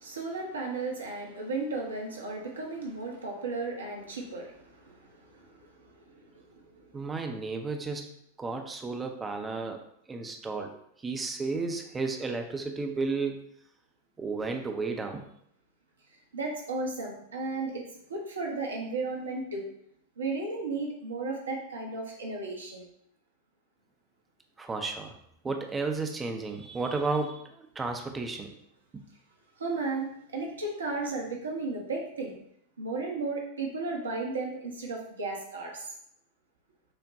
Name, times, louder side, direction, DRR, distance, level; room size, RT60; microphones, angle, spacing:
voice 1, 0.0-4.5 4.9-5.0 5.4-5.5 16.3-17.8 18.1-19.7 20.2-22.8 29.6-32.3 32.8-35.9, right 3 dB, 70° right, 0 dB, 0.8 m, -34 dB
voice 2, 6.9-8.1 8.4-9.8 10.1-10.7 11.0-13.5 14.2-15.2 24.6-25.1 25.4-28.5, right 3 dB, 15° right, 4 dB, 0.5 m, -33 dB
6.2 x 2.2 x 2.6 m, 0.72 s
figure-of-eight pair, 90°, 0 cm